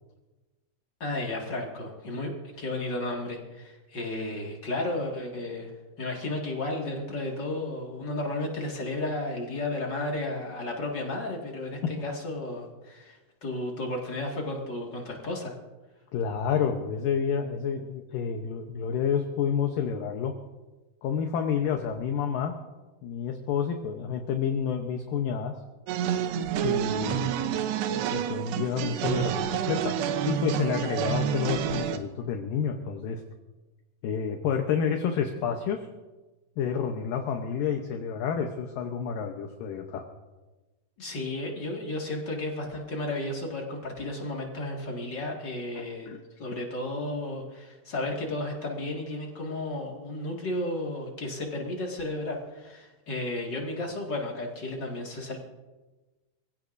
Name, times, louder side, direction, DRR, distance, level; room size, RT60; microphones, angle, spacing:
voice 1, 1.0-5.7 6.0-15.5 41.0-46.1 46.4-55.4, left 2 dB, 40° left, -1 dB, 1.6 m, -33 dB
voice 2, 16.1-20.3 21.0-22.5 23.0-25.5 26.6-27.4 27.9-30.0 30.3-33.2 34.0-35.9 36.6-40.0 45.8-46.2, left 7 dB, 70° left, 4 dB, 2.2 m, -29 dB
sound 1, 25.9-32.0, right 10 dB, 90° right, 2.9 m, -28 dB
25.0 x 16.0 x 2.6 m, 1.2 s
omnidirectional pair, 4.9 m